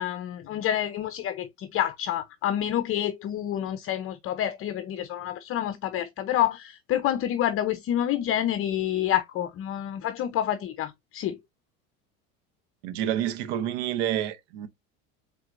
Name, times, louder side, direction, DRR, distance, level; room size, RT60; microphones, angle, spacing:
voice 1, 0.0-11.4, left 11 dB, 45° left, 0.6 m, -28 dB
voice 2, 12.8-14.7, right 11 dB, 75° right, 0.8 m, -28 dB
4.3 x 3.8 x 2.5 m
supercardioid pair, 100°, 32 cm